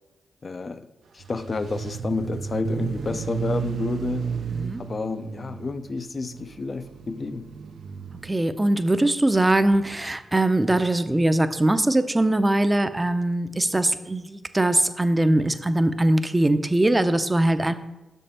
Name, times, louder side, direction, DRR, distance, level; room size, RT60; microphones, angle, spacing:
voice 1, 0.4-0.9 1.1-4.3 4.8-7.5, left 3 dB, 45° left, 0.5 m, -30 dB
sound 1, 1.2-8.3, right 7 dB, 70° right, 0.4 m, -33 dB
voice 2, 8.2-17.7, right 1 dB, 20° right, 0.5 m, -21 dB
6.5 x 5.4 x 4.3 m
supercardioid pair, 50°, 0 cm